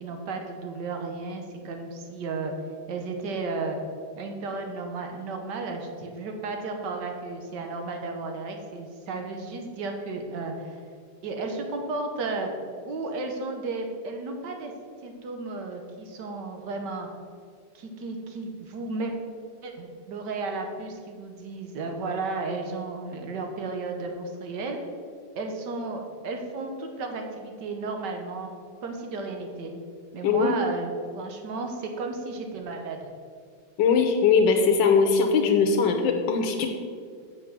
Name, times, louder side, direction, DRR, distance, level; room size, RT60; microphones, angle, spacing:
voice 1, 0.0-2.5 2.9-3.8 4.2-10.8 11.2-12.5 12.8-14.7 15.0-17.1 17.7-19.1 19.6-24.8 25.4-28.5 28.8-29.7 30.1-33.1, right 3 dB, 70° right, 3 dB, 1.6 m, -33 dB
voice 2, 30.2-30.5 33.8-36.7, left 5 dB, 85° left, 3 dB, 1.5 m, -21 dB
7.1 x 5.8 x 6.7 m, 2.1 s
omnidirectional pair, 2.0 m